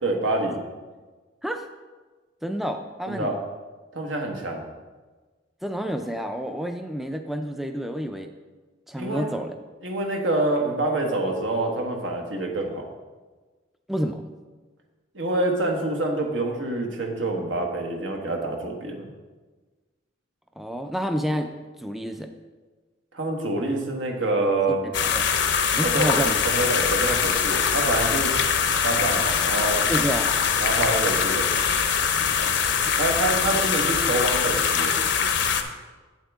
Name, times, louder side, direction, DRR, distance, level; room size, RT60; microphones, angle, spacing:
voice 1, 0.0-0.6 3.1-3.4 3.9-4.6 9.0-9.3 9.8-12.9 15.1-19.1 23.1-24.8 25.8-28.3 28.8-29.8 30.6-31.5 33.0-35.0, right 2 dB, 80° right, 1 dB, 1.3 m, -26 dB
voice 2, 2.4-3.3 5.6-8.3 8.9-9.5 13.9-14.3 20.6-21.5 21.8-22.3 24.8-25.3 25.7-26.4 29.9-30.3, equal, ahead, 6 dB, 0.3 m, -29 dB
sound 1, 24.9-35.6, left 6 dB, 65° left, 0.7 m, -23 dB
8.3 x 7.4 x 3.5 m, 1.3 s
head